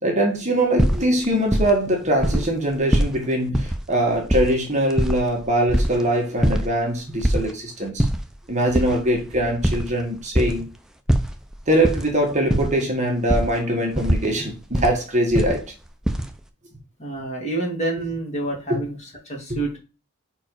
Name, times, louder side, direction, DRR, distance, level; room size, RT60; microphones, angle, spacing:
voice 1, 0.0-8.1 8.5-10.7 11.7-15.6 18.7-18.8 19.5-19.6, right 1 dB, 30° right, 1.6 m, -22 dB
sound 1, 0.8-1.9 2.2-3.1 3.5-3.8 4.1-6.0 6.4-6.6 6.9-7.5 7.9-8.2 8.7-10.6 11.1-12.0 12.3-12.8 13.3-13.5 13.9-14.9 15.3-16.3, equal, ahead, 0.5 m, -21 dB
voice 2, 17.0-19.0 19.3-19.8, right 2 dB, 30° left, 2.5 m, -27 dB
5.3 x 4.5 x 4.6 m
head